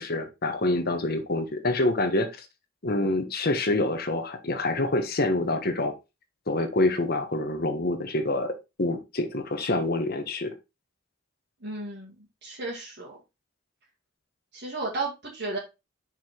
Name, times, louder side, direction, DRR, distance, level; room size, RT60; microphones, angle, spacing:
voice 1, 0.0-2.5 2.8-5.9 6.5-10.5, left 2 dB, 50° left, 7 dB, 1.3 m, -26 dB
voice 2, 11.6-12.2 12.4-13.2 14.5-15.6, right 3 dB, 60° right, -5 dB, 2.0 m, -33 dB
5.8 x 4.8 x 4.3 m, 0.25 s
head